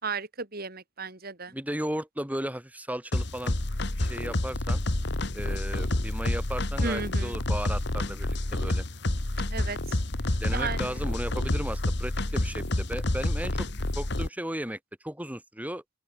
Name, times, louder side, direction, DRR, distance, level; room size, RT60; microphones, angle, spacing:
voice 1, 0.0-1.5 6.8-7.4 9.5-10.0 10.5-11.1, right 4 dB, 50° right, 3.9 m, -34 dB
voice 2, 1.5-3.6 4.0-4.8 5.3-8.8 10.4-13.7 14.0-14.8 15.0-15.8, right 1 dB, 10° right, 3.7 m, -35 dB
sound 1, 3.1-14.3, left 1 dB, 60° left, 1.8 m, -29 dB
open air
head